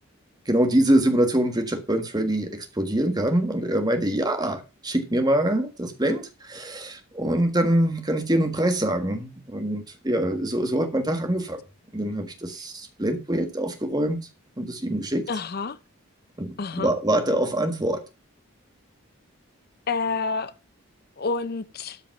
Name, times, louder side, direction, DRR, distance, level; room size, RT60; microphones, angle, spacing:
voice 1, 0.5-11.6 11.9-14.3 14.6-15.2 16.4-18.0, right 1 dB, 20° right, 1.5 m, -24 dB
voice 2, 15.3-15.8 16.6-16.9 19.9-20.5 21.2-22.0, left 4 dB, 45° left, 0.5 m, -28 dB
12.5 x 5.2 x 5.8 m
head